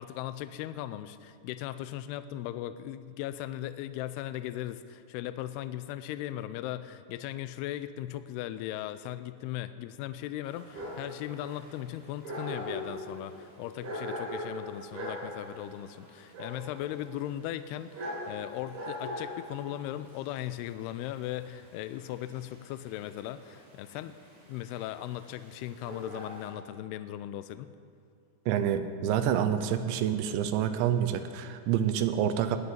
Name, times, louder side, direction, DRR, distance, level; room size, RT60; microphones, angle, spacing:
voice 1, 0.0-24.2 24.5-27.7, left 13 dB, 85° left, 13 dB, 2.3 m, -38 dB
Dog, 10.4-26.5, equal, 55° right, 5.4 m, -41 dB
voice 2, 28.5-32.6, right 9 dB, 80° right, 9 dB, 3.0 m, -27 dB
19.5 x 6.9 x 8.9 m, 2.4 s
omnidirectional pair, 5.2 m